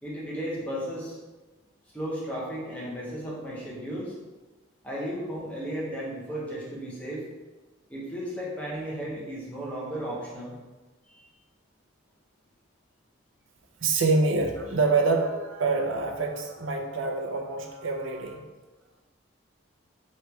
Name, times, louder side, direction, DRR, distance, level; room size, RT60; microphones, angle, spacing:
voice 1, 0.0-1.2 1.9-4.1 4.8-7.2 7.9-10.5 11.1-11.3, equal, 5° left, -6 dB, 0.9 m, -34 dB
voice 2, 13.8-18.5, right 3 dB, 70° right, 3 dB, 0.6 m, -26 dB
3.2 x 3.2 x 4.6 m, 1.2 s
head